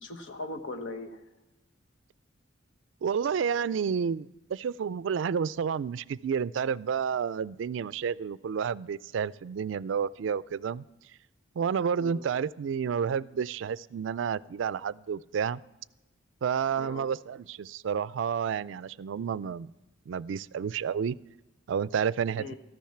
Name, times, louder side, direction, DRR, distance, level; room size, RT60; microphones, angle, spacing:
voice 1, 0.0-1.2 12.0-12.3 16.7-17.1 22.4-22.6, left 2 dB, 80° left, 5 dB, 1.2 m, -39 dB
voice 2, 3.0-10.8 11.6-15.6 16.4-19.7 20.1-21.2 21.7-22.5, right 7 dB, 75° right, 19 dB, 0.3 m, -30 dB
14.0 x 10.5 x 5.8 m, 1.0 s
head